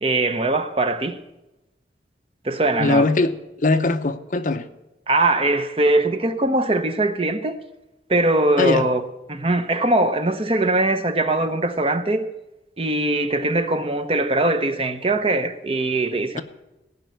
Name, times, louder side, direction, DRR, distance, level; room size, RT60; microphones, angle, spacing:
voice 1, 0.0-1.2 2.4-3.1 5.1-7.6 8.1-12.3 12.8-16.4, right 2 dB, 30° right, 0.7 m, -21 dB
voice 2, 2.8-3.3 3.6-4.7 8.6-8.9, left 2 dB, 45° left, 0.7 m, -20 dB
16.0 x 5.4 x 9.1 m
head